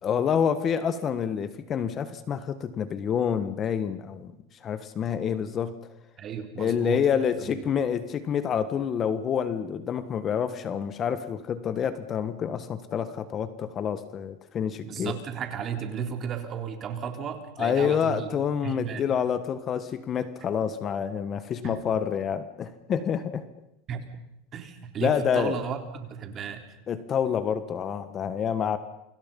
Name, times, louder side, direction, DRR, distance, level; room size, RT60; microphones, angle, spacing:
voice 1, 0.0-4.3 4.6-5.7 6.6-15.2 17.6-23.4 25.0-25.6 26.9-28.8, left 8 dB, 30° left, 12 dB, 1.5 m, -28 dB
voice 2, 6.2-7.0 7.4-7.7 14.8-18.3 18.6-19.0 21.6-21.9 23.9-24.1 24.5-26.6, right 7 dB, 30° right, 6 dB, 3.6 m, -34 dB
29.0 x 25.5 x 5.5 m, 0.83 s
supercardioid pair, 140°, 0 cm